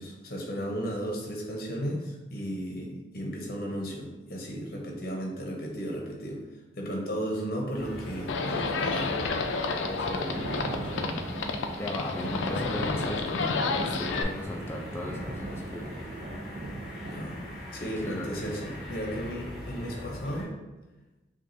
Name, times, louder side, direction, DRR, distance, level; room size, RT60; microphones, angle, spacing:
voice 1, 0.0-6.4 6.8-9.1 12.2-12.3 17.1-17.4 17.7-20.5, equal, 50° left, 0 dB, 0.7 m, -34 dB
sound 1, 7.7-20.4, equal, ahead, 1.3 m, -42 dB
Livestock farm animals working animals, 8.3-14.2, left 4 dB, 85° left, 0.4 m, -30 dB
voice 2, 9.8-11.3 11.8-15.9 17.8-18.3, left 1 dB, 15° left, 0 dB, 0.4 m, -37 dB
Thunder, 9.8-17.6, right 1 dB, 45° right, 0.4 m, -40 dB
5.9 x 2.3 x 2.6 m, 1.1 s
head